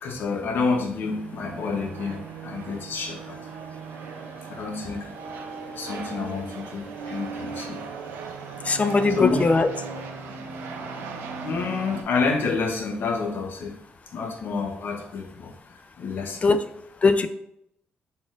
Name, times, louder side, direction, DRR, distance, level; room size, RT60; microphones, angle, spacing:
voice 1, 0.0-3.4 4.5-5.1 5.7-7.9 9.1-9.4 11.4-13.7 14.1-16.5, left 4 dB, 65° left, 2 dB, 0.8 m, -29 dB
sound 1, 1.0-12.0, right 5 dB, 85° right, 0.4 m, -37 dB
voice 2, 8.7-9.7 16.4-16.6 17.0-17.3, left 4 dB, 35° left, 10 dB, 0.3 m, -20 dB
4.1 x 3.6 x 2.4 m, 0.76 s
supercardioid pair, 65°, 4 cm